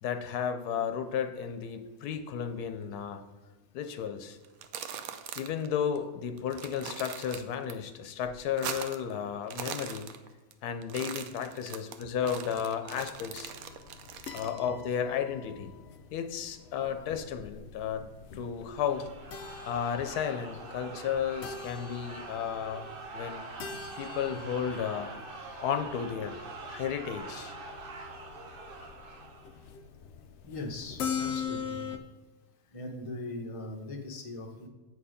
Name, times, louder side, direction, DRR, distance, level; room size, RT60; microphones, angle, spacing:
voice 1, 0.0-3.2 3.7-4.4 5.4-10.1 10.6-13.5 14.3-15.7 16.1-18.0 18.3-19.1 19.7-22.8 23.1-23.4 23.9-25.1 25.6-26.4 26.6-27.5, left 8 dB, 85° left, 8 dB, 1.2 m, -33 dB
sound 1, 4.4-5.7 6.0-6.1 6.4-7.7 8.1-9.1 9.4-10.5 10.8-14.6, right 8 dB, 70° right, 1.0 m, -41 dB
sound 2, 12.9-32.0, left 7 dB, 65° left, 0.7 m, -43 dB
sound 3, 18.7-29.7, right 3 dB, 45° right, 0.8 m, -45 dB
voice 2, 30.4-31.8 32.7-34.7, left 2 dB, 25° left, 2 dB, 0.8 m, -40 dB
8.1 x 4.7 x 5.0 m, 1.2 s
omnidirectional pair, 1.6 m